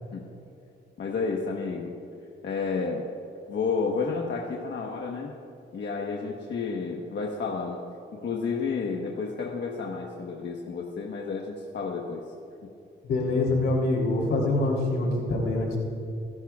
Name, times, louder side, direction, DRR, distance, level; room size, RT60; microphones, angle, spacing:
voice 1, 1.0-1.9 2.4-3.0 3.5-5.3 5.7-7.8 8.1-12.2, left 4 dB, 60° left, -1 dB, 1.2 m, -31 dB
voice 2, 13.0-15.8, left 2 dB, 85° left, -2 dB, 3.3 m, -25 dB
27.0 x 11.5 x 2.4 m, 2.7 s
cardioid pair, 95°, 21 cm